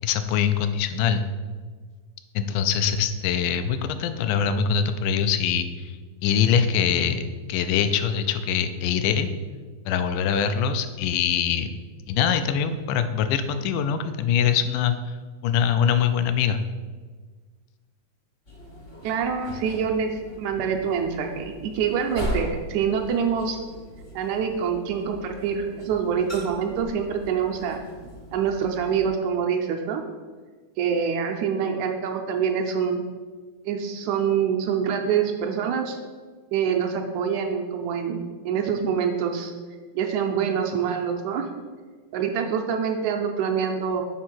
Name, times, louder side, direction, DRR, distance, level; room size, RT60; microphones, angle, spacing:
voice 1, 0.0-1.3 2.4-5.9 6.2-7.2 7.5-9.3 9.9-11.7 12.1-15.0 15.4-16.6, left 7 dB, 85° left, 9 dB, 2.1 m, -23 dB
sound 1, 18.4-29.1, equal, 40° left, 0.7 m, -39 dB
voice 2, 19.0-20.1 20.4-23.6 24.2-27.8 28.3-30.0 30.8-33.0 33.7-36.0 36.5-39.5 40.0-41.5 42.1-44.0, right 7 dB, 80° right, 3 dB, 1.9 m, -25 dB
7.2 x 3.7 x 6.1 m, 1.5 s
omnidirectional pair, 3.6 m